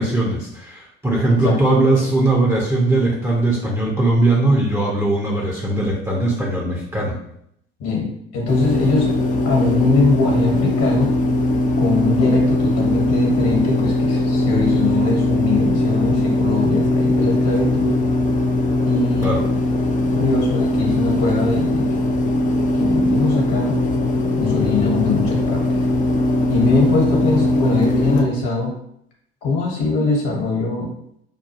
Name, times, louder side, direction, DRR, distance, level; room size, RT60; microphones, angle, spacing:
voice 1, 0.0-7.2 19.2-19.4, right 2 dB, 10° right, -3 dB, 0.9 m, -19 dB
voice 2, 7.8-9.1 9.4-11.1 11.8-17.9 18.9-19.3 20.1-22.1 22.8-23.8 24.4-25.6 26.5-28.7 29.4-30.9, left 3 dB, 55° left, -1 dB, 1.4 m, -22 dB
sound 1, 8.5-28.2, left 1 dB, 25° left, 0.7 m, -20 dB
5.4 x 2.3 x 2.9 m, 0.72 s
hypercardioid pair, 65°, 31 cm